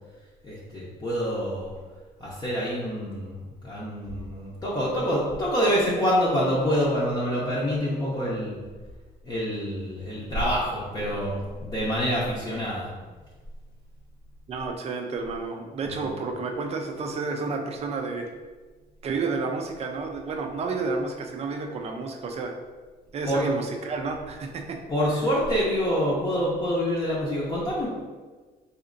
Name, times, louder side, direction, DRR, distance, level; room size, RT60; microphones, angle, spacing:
voice 1, 0.4-1.7 2.2-8.6 9.2-12.9 15.8-16.0 23.2-23.4 24.9-27.9, equal, 25° left, -6 dB, 0.7 m, -26 dB
voice 2, 14.5-18.3 19.0-22.5 23.1-24.8, right 4 dB, 40° right, 3 dB, 0.5 m, -31 dB
4.1 x 2.7 x 2.5 m, 1.3 s
cardioid pair, 110°, 17 cm